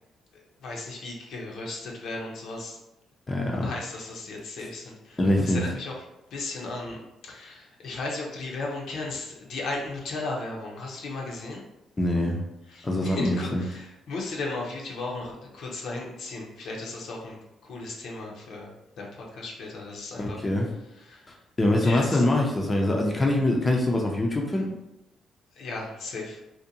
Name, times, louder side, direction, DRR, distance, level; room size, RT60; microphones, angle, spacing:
voice 1, 0.3-2.8 3.6-5.9 6.3-11.6 12.7-18.7 19.0-20.4 20.9-21.3 21.8-22.3 25.5-26.4, left 3 dB, 70° left, -1 dB, 0.6 m, -36 dB
voice 2, 3.3-3.7 5.2-5.6 12.0-12.4 12.8-13.6 20.2-20.7 21.6-24.7, left 1 dB, 25° left, 0 dB, 0.5 m, -24 dB
2.6 x 2.1 x 2.7 m, 0.90 s
cardioid pair, 90°, 0 cm